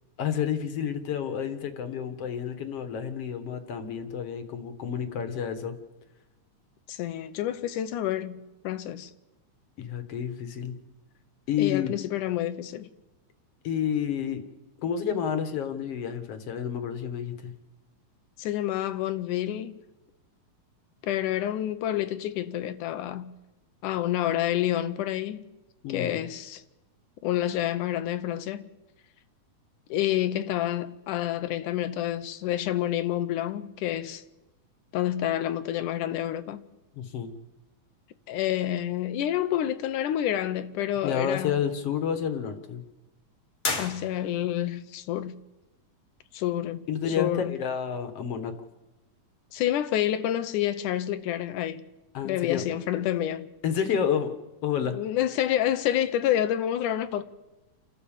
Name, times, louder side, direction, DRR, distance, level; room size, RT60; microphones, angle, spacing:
voice 1, 0.2-5.7 9.8-10.7 11.5-12.0 13.6-14.4 14.8-17.5 25.8-26.2 36.9-37.3 41.0-42.8 46.9-48.5 52.1-52.6 53.6-54.4 54.6-55.0, left 8 dB, 55° left, 2.3 m, -30 dB
voice 2, 6.9-9.1 11.6-12.9 18.4-19.8 21.0-23.3 23.8-25.5 25.9-26.6 27.2-28.7 29.9-34.2 34.9-36.7 38.3-41.6 43.8-45.4 46.3-46.9 47.2-47.5 49.5-51.8 52.2-53.5 54.9-57.2, left 12 dB, 80° left, 2.3 m, -28 dB
sound 1, 43.6-44.6, left 3 dB, 25° left, 1.9 m, -32 dB
29.5 x 12.5 x 7.3 m
omnidirectional pair, 3.6 m